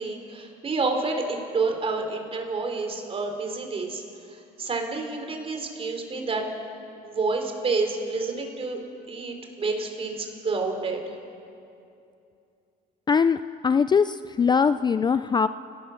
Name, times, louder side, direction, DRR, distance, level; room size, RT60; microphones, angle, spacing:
voice 1, 0.0-4.0 4.3-6.5 7.0-8.8 9.1-11.0, right 3 dB, 35° right, 4 dB, 3.9 m, -29 dB
voice 2, 13.1-15.5, left 6 dB, 25° left, 13 dB, 0.4 m, -22 dB
29.5 x 18.0 x 6.6 m, 2.6 s
cardioid pair, 110°, 17 cm